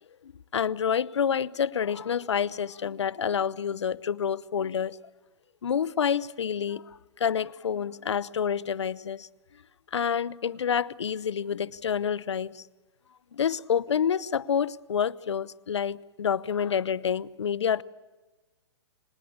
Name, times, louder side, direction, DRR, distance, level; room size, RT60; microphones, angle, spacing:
voice 1, 0.2-5.0 5.6-9.3 9.9-12.6 13.3-17.8, left 7 dB, 75° left, 0.8 m, -28 dB
25.5 x 19.0 x 8.7 m
hypercardioid pair, 130°, 15 cm